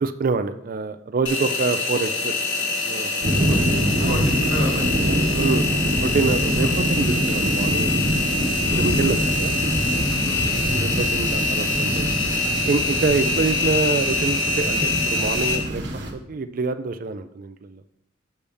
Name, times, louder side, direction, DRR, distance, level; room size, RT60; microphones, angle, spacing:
voice 1, 0.0-2.3 2.9-3.1 4.0-4.2 5.4-5.7 6.0-7.9 8.8-9.5 10.7-12.1 12.6-17.8, right 4 dB, 45° right, 10 dB, 0.4 m, -26 dB
Engine, 1.3-15.6, left 3 dB, 80° left, 1.7 m, -25 dB
sound 1, 3.2-16.1, equal, 65° right, 1.3 m, -25 dB
voice 2, 4.1-5.4 6.6-6.7 8.6-8.9 10.2-10.6, left 1 dB, 55° left, -3 dB, 2.4 m, -34 dB
6.9 x 6.7 x 3.5 m, 0.75 s
head